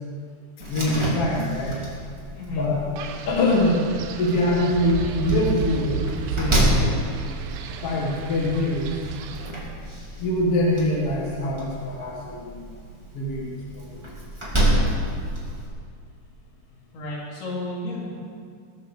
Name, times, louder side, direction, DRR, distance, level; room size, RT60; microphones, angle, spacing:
Slam, 0.6-15.7, right 1 dB, 10° right, 1.9 m, -29 dB
voice 1, 0.7-1.8 2.5-2.8 3.3-3.8 4.2-6.0 6.3-6.9 7.8-8.9 10.2-12.8 13.1-13.9, left 1 dB, 50° left, -2 dB, 2.0 m, -24 dB
voice 2, 2.3-2.7 16.9-18.2, left 2 dB, 75° left, -5 dB, 5.0 m, -32 dB
Wind, 3.0-9.5, right 6 dB, 85° right, 2.9 m, -33 dB
19.5 x 6.8 x 6.7 m, 2.1 s
omnidirectional pair, 4.5 m